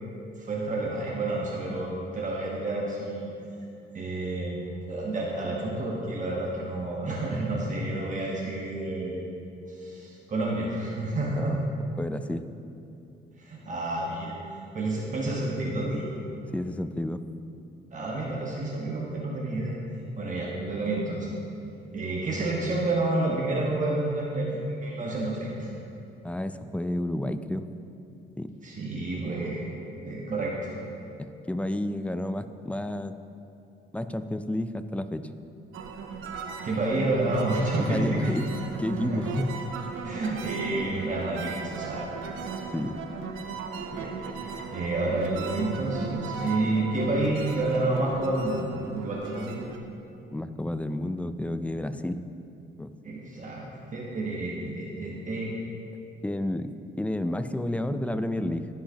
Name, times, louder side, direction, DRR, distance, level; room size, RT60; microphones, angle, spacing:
voice 1, 0.4-3.3 3.9-9.2 9.7-11.5 13.4-14.3 14.7-16.1 17.9-19.7 20.2-21.3 21.9-25.7 28.6-29.7 30.0-30.7 36.6-38.3 38.9-39.2 40.0-42.0 43.9-44.1 44.4-48.7 48.9-49.6 53.0-53.6 53.9-55.5, right 2 dB, 40° right, -4 dB, 1.2 m, -29 dB
voice 2, 12.0-12.5 16.5-17.2 26.2-27.7 28.4-28.5 31.2-33.1 33.9-35.3 37.8-38.5 38.8-39.5 39.8-39.9 42.7-43.0 50.3-52.2 52.8-52.9 56.2-58.7, left 1 dB, 5° left, 10 dB, 0.4 m, -30 dB
sound 1, 35.7-49.8, right 5 dB, 85° right, 0.7 m, -37 dB
15.5 x 5.8 x 2.8 m, 2.7 s
cardioid pair, 90°, 20 cm